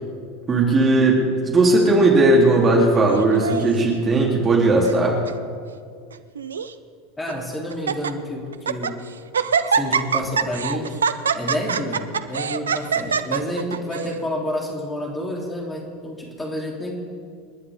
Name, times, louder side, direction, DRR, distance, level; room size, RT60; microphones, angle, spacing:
voice 1, 0.5-5.3, right 2 dB, 25° right, -2 dB, 3.6 m, -17 dB
Laughter, 3.1-3.9 4.6-5.0 5.2-5.3 6.1-6.7 7.3-7.4 7.7-8.1 8.5-8.9 9.3-14.1, right 6 dB, 80° right, 0.6 m, -24 dB
voice 2, 7.2-9.0 9.7-10.9 11.3-16.9, left 1 dB, 10° left, -2 dB, 3.7 m, -29 dB
29.0 x 11.0 x 3.8 m, 2.1 s
figure-of-eight pair, 80°, 0 cm